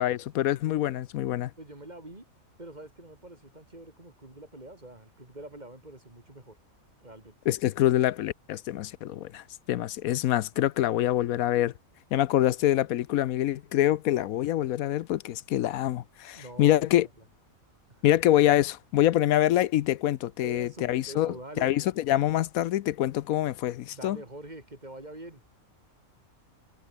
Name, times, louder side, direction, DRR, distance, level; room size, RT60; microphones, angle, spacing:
voice 1, 0.0-1.5 7.5-11.7 12.1-17.1 18.0-24.2, left 13 dB, 80° left, 1.1 m, -25 dB
voice 2, 1.6-2.2 2.6-6.6 7.0-7.4 16.3-17.2 17.9-18.0 20.4-21.7 23.9-25.4, right 1 dB, 30° right, 4.1 m, -45 dB
omnidirectional pair, 1.5 m